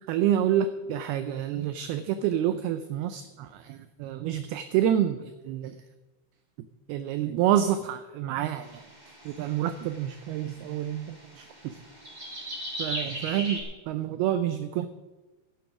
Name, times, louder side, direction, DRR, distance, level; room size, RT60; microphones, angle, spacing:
voice 1, 0.1-5.8 6.9-8.8 9.3-11.1 11.4-11.8 12.8-13.6 13.9-14.9, right 10 dB, 85° right, 10 dB, 2.2 m, -28 dB
sound 1, 8.6-13.6, equal, 25° right, 0.9 m, -39 dB
12.0 x 10.5 x 5.9 m, 1.2 s
omnidirectional pair, 5.1 m